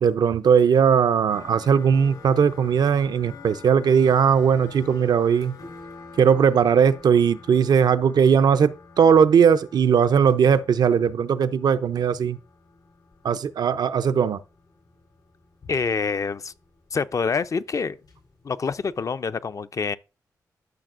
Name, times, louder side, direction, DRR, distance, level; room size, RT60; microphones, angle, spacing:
voice 1, 0.0-5.6 6.2-12.4 13.2-14.4, right 7 dB, 75° right, 0.5 m, -19 dB
sound 1, 1.3-19.1, left 4 dB, 75° left, 4.1 m, -47 dB
voice 2, 15.7-16.5 16.9-18.0 18.4-20.0, left 5 dB, 50° left, 0.5 m, -26 dB
13.0 x 5.9 x 2.5 m
cardioid pair, 55°, 7 cm